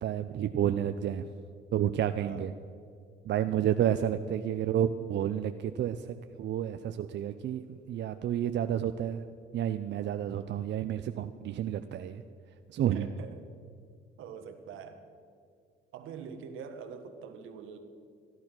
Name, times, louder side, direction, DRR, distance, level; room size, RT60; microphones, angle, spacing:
voice 1, 0.0-1.3 1.7-2.5 3.2-9.2 9.5-12.2 12.7-13.1, right 10 dB, 65° right, 9 dB, 0.5 m, -30 dB
voice 2, 2.2-2.5 3.5-3.6 12.9-13.4 14.2-15.0 15.9-17.8, right 6 dB, 85° right, 7 dB, 1.4 m, -44 dB
14.5 x 11.0 x 6.1 m, 2.3 s
cardioid pair, 90°, 20 cm